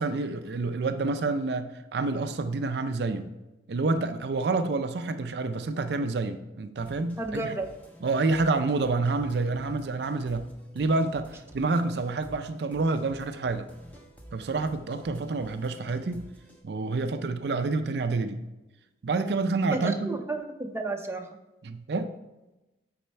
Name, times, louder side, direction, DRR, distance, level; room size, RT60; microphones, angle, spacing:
voice 1, 0.0-3.3 3.7-7.6 8.0-10.5 10.7-13.7 14.3-16.3 16.6-18.4 19.0-20.2 21.6-22.1, right 3 dB, 65° right, 9 dB, 0.4 m, -28 dB
sound 1, 6.8-16.6, right 1 dB, 10° left, 1.0 m, -52 dB
voice 2, 7.2-7.7 19.7-21.3, right 2 dB, 15° right, 3 dB, 0.6 m, -32 dB
8.7 x 4.3 x 4.3 m, 1.0 s
head